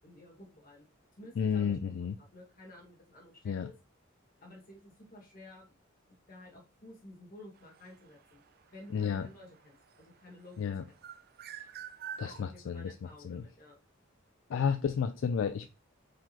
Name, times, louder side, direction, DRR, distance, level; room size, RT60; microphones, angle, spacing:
voice 1, 0.0-0.9 1.1-3.8 4.4-5.7 6.3-8.4 8.7-10.7 12.2-13.8, left 1 dB, 45° left, 1.6 m, -53 dB
voice 2, 1.4-2.2 3.4-3.7 8.9-9.3 10.6-10.8 12.2-13.4 14.5-15.7, left 7 dB, 70° left, 0.3 m, -32 dB
sound 1, 7.5-10.5 10.9-12.5, right 8 dB, 50° right, 0.4 m, -46 dB
4.8 x 3.7 x 2.8 m
head